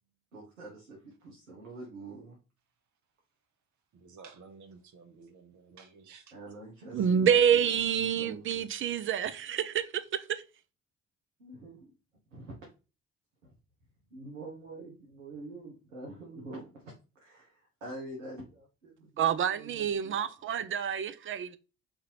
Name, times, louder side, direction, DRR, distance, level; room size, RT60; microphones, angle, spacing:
voice 1, 0.3-2.4 6.3-8.8 9.5-9.6 11.4-11.9 12.3-12.6 13.4-13.5 14.1-20.5 21.2-21.3, right 2 dB, 85° right, 0.9 m, -46 dB
voice 2, 3.9-6.3, right 5 dB, 50° right, 0.9 m, -53 dB
voice 3, 6.9-10.4 19.2-21.6, right 8 dB, 35° right, 0.4 m, -28 dB
4.0 x 2.7 x 2.9 m
figure-of-eight pair, 45°, 38 cm